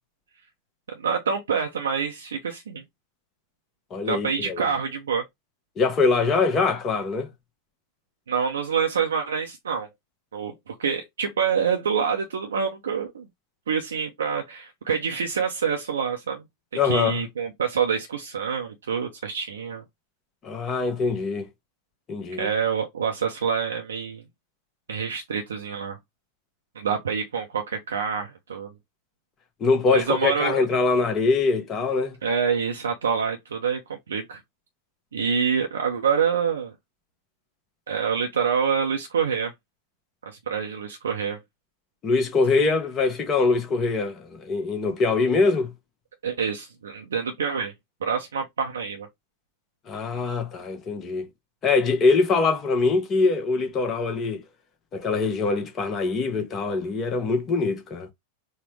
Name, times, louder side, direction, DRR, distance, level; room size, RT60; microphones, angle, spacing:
voice 1, 0.9-2.8 4.1-5.2 8.3-9.9 10.3-13.3 13.7-16.4 16.7-19.8 22.4-24.2 24.9-26.0 26.7-28.7 29.9-30.6 32.2-34.4 35.1-36.7 37.9-39.5 40.2-41.4 46.2-47.7 48.0-49.1, right 6 dB, 65° right, 0.5 m, -26 dB
voice 2, 3.9-4.7 5.8-7.3 16.7-17.2 20.4-21.5 22.1-22.5 29.6-32.1 42.0-45.7 49.9-51.3 51.6-54.4 54.9-58.1, left 4 dB, 25° left, 0.9 m, -23 dB
4.2 x 2.1 x 3.2 m
figure-of-eight pair, 90°, 0 cm